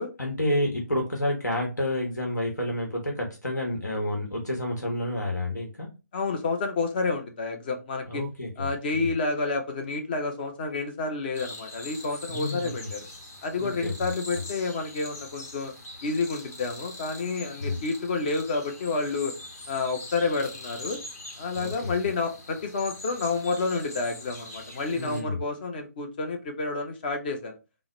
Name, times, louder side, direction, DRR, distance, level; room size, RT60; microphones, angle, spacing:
voice 1, 0.2-5.9 8.1-9.1 12.3-12.9 13.6-13.9 14.3-14.4 17.6-17.8 21.5-21.9 24.9-25.4, left 1 dB, 75° left, 0 dB, 1.1 m, -30 dB
voice 2, 6.1-8.2 8.6-13.0 13.4-15.7 16.0-19.3 19.7-21.0 21.4-27.6, left 3 dB, 30° left, 5 dB, 0.6 m, -29 dB
sound 1, 11.3-25.2, left 2 dB, 55° left, 1.5 m, -43 dB
3.9 x 2.0 x 2.9 m, 0.29 s
figure-of-eight pair, 140°, 9 cm